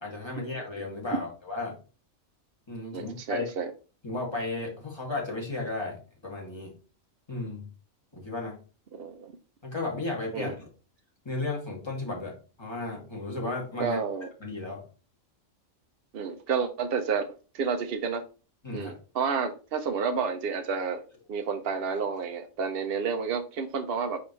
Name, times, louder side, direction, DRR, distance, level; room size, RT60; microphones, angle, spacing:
voice 1, 0.0-1.8 2.7-3.5 4.0-6.7 7.3-7.7 8.1-8.6 9.6-10.6 11.2-14.0 14.4-14.8 18.6-19.0, left 2 dB, 20° left, -2 dB, 2.1 m, -34 dB
voice 2, 2.9-3.7 8.9-9.3 10.3-10.5 13.8-14.3 16.1-18.2 18.7-21.0 21.3-24.2, right 5 dB, 55° right, 6 dB, 0.8 m, -30 dB
8.9 x 3.5 x 3.1 m, 0.35 s
omnidirectional pair, 1.4 m